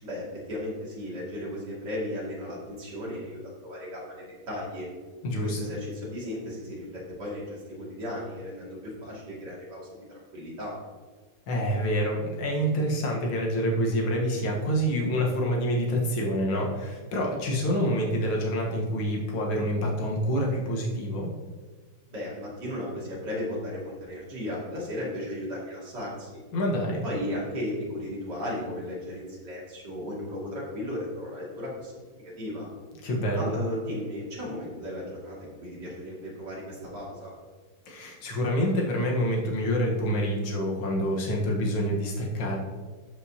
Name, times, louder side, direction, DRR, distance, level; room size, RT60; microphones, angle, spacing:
voice 1, 0.0-4.9 5.4-10.0 10.3-10.7 22.1-26.4 27.0-32.1 32.4-32.7 33.3-37.3, left 1 dB, 55° right, -5 dB, 3.0 m, -35 dB
voice 2, 5.2-5.6 11.5-21.3 26.5-27.1 33.0-33.6 37.9-42.6, equal, 75° left, -1 dB, 2.1 m, -27 dB
13.0 x 5.3 x 2.8 m, 1.4 s
omnidirectional pair, 2.3 m